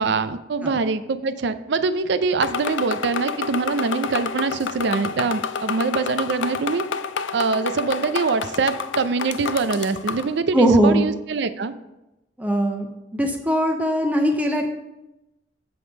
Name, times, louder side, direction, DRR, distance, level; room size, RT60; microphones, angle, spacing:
voice 1, 0.0-6.8 7.3-11.7, right 4 dB, 65° right, 12 dB, 0.5 m, -24 dB
sound 1, 2.4-10.3, left 6 dB, 75° left, 0.4 m, -29 dB
voice 2, 10.5-11.0 12.4-14.7, right 1 dB, 10° right, 3 dB, 0.6 m, -20 dB
7.8 x 5.1 x 5.2 m, 0.95 s
head